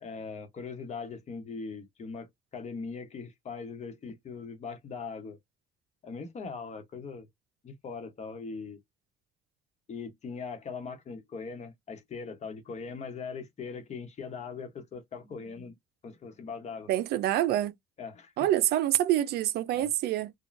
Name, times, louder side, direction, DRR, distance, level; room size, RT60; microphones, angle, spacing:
voice 1, 0.0-5.4 6.0-7.3 7.6-8.8 9.9-15.8 16.0-16.9 18.0-18.3 19.7-19.9, left 5 dB, 40° left, 1.0 m, -40 dB
voice 2, 16.9-17.7 18.4-20.3, right 13 dB, 70° right, 0.4 m, -26 dB
3.0 x 2.2 x 2.6 m
cardioid pair, 110°, 17 cm